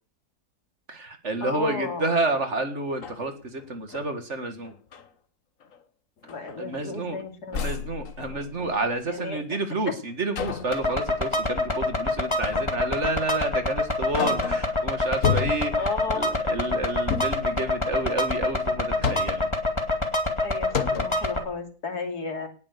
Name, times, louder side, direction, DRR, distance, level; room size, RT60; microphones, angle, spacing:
voice 1, 0.9-4.7 6.6-7.2 7.5-15.9 16.1-19.5, right 2 dB, 45° right, 7 dB, 2.2 m, -30 dB
voice 2, 1.4-2.1 6.3-7.6 9.1-9.6 15.8-16.4 20.4-22.5, left 3 dB, 75° left, 4 dB, 3.3 m, -34 dB
sound 1, 2.3-2.4 2.9-4.1 4.6-5.1 5.6-5.8 6.2-7.1 7.5-9.0 10.4-10.8 12.5-12.9 13.4-13.5 13.9-14.8 15.2-15.9 17.0-17.5 18.7-19.5 20.3-20.4 20.7-21.2, left 7 dB, 55° left, 1.5 m, -31 dB
sound 2, 10.7-21.4, left 2 dB, 15° left, 2.4 m, -26 dB
18.5 x 8.6 x 6.8 m, 0.41 s
omnidirectional pair, 1.7 m